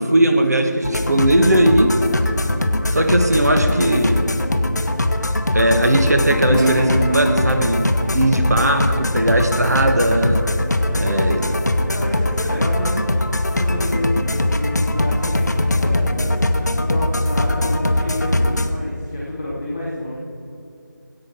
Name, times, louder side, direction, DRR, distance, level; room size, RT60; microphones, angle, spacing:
voice 1, 0.0-1.9 2.9-4.3 5.5-7.8 8.1-10.4 10.9-11.6, right 1 dB, 55° right, 5 dB, 1.2 m, -18 dB
sound 1, 0.8-18.7, left 1 dB, 60° left, 0.8 m, -21 dB
Guitar, 6.5-9.7, right 1 dB, 85° right, 3.0 m, -26 dB
voice 2, 8.2-8.7 10.7-16.3 16.7-20.1, left 1 dB, 5° left, -12 dB, 0.6 m, -30 dB
14.5 x 8.8 x 4.4 m, 2.7 s
figure-of-eight pair, 170°, 11 cm